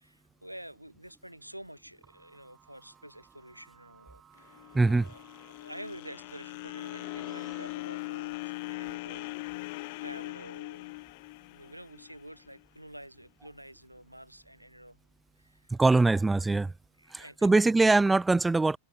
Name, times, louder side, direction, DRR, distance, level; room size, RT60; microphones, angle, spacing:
voice 1, 0.0-5.2 5.6-9.4 10.0-10.9 11.5-15.0 15.4-15.7 17.0-17.6, right 1 dB, 90° right, 2.3 m, -48 dB
sound 1, 2.0-7.8, right 8 dB, 25° right, 7.9 m, -59 dB
sound 2, 4.4-12.6, left 24 dB, 50° left, 1.0 m, -40 dB
voice 2, 4.7-5.1 15.7-16.7 17.1-18.8, right 3 dB, 10° right, 0.3 m, -23 dB
figure-of-eight pair, 90°, 0 cm